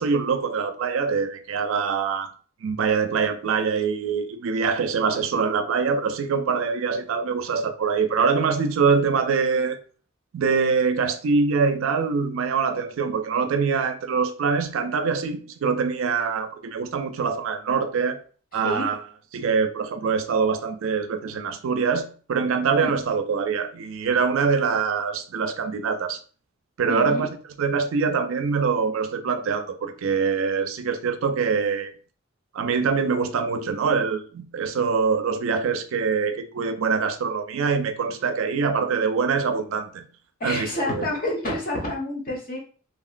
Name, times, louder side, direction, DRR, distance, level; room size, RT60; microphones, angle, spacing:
voice 1, 0.0-2.3 2.6-9.8 10.3-18.2 18.5-19.0 19.3-26.2 26.8-27.3 27.6-31.9 32.5-40.1 40.4-41.0, right 5 dB, 75° right, 0.4 m, -24 dB
voice 2, 26.9-27.3 40.4-42.6, left 1 dB, 45° left, 1.0 m, -28 dB
2.8 x 2.8 x 2.4 m
head